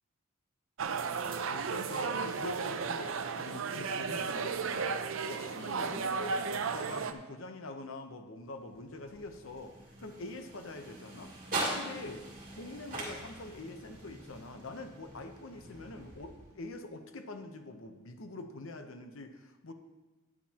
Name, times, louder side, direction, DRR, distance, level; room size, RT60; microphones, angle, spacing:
sound 1, 0.8-7.1, right 5 dB, 70° right, 0.5 m, -34 dB
voice 1, 1.4-5.0 5.3-11.3 11.7-12.2 12.5-19.7, left 2 dB, 75° left, 7 dB, 0.8 m, -45 dB
sound 2, 8.5-16.8, right 2 dB, 40° right, 2.7 m, -42 dB
11.5 x 9.8 x 2.9 m, 1.2 s
head